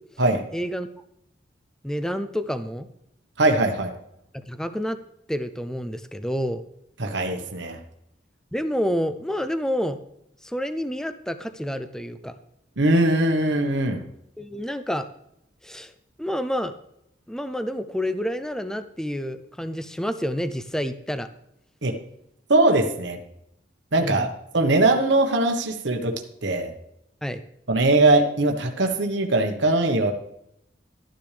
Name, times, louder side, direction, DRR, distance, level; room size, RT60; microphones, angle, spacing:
voice 1, 0.5-0.9 1.8-2.9 4.3-5.0 5.3-6.6 8.5-10.0 10.4-12.4 14.4-15.1 15.6-15.9 16.2-16.7 17.3-21.3 24.0-24.3 27.2-27.4, equal, 5° left, 10 dB, 0.4 m, -28 dB
voice 2, 3.4-3.9 7.0-7.8 12.8-14.0 21.8-22.0 22.5-23.2 23.9-24.3 24.5-26.1 26.4-26.7 27.7-30.1, right 2 dB, 70° right, 4 dB, 1.2 m, -21 dB
13.5 x 10.0 x 3.4 m, 0.77 s
head